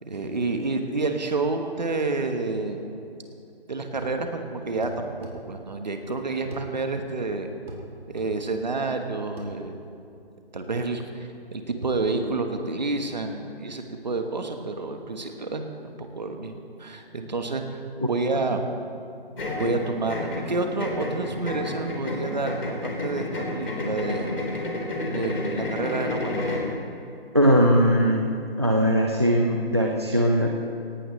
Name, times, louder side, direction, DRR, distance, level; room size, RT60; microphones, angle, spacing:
voice 1, 0.0-2.8 3.7-5.1 5.5-7.5 8.1-9.7 10.5-15.7 16.0-17.8 18.1-18.6 19.6-24.3 25.1-26.6, right 3 dB, 45° right, 5 dB, 1.4 m, -29 dB
sound 1, 3.9-4.2 4.8-5.4 6.5-6.7 7.7-7.9 8.2-8.3 9.4-9.5, right 1 dB, 75° right, 3.6 m, -39 dB
sound 2, 19.4-26.7, left 2 dB, 65° left, 3.6 m, -30 dB
voice 2, 27.3-28.3 28.6-30.5, equal, 25° right, 2 dB, 0.5 m, -20 dB
18.0 x 17.5 x 3.3 m, 2.6 s
hypercardioid pair, 175°, 31 cm